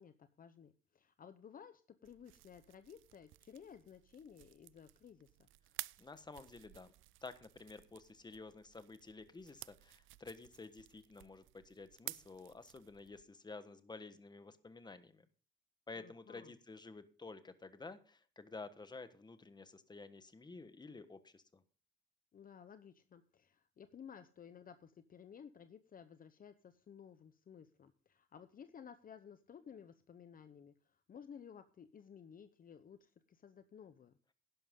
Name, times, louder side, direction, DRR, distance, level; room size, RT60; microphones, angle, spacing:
voice 1, 0.0-5.5 16.0-16.5 22.3-34.2, left 7 dB, 45° left, 11 dB, 0.8 m, -56 dB
sound 1, 2.0-13.2, right 18 dB, 85° right, 0.4 m, -54 dB
voice 2, 6.0-6.9 7.2-15.3 15.9-21.6, left 3 dB, 20° left, 11 dB, 1.3 m, -52 dB
11.5 x 11.0 x 3.7 m, 0.39 s
cardioid pair, 90°, 20 cm